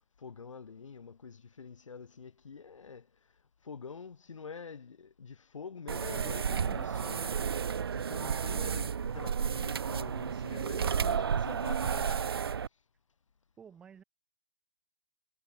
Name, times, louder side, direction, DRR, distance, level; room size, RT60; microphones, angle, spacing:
voice 1, 0.2-3.1 3.6-7.3 7.9-12.3, left 5 dB, 80° left, 1.6 m, -46 dB
sound 1, 5.9-12.7, right 7 dB, 50° right, 0.8 m, -32 dB
voice 2, 13.6-14.0, right 7 dB, 5° right, 2.6 m, -54 dB
hypercardioid pair, 175°, 16 cm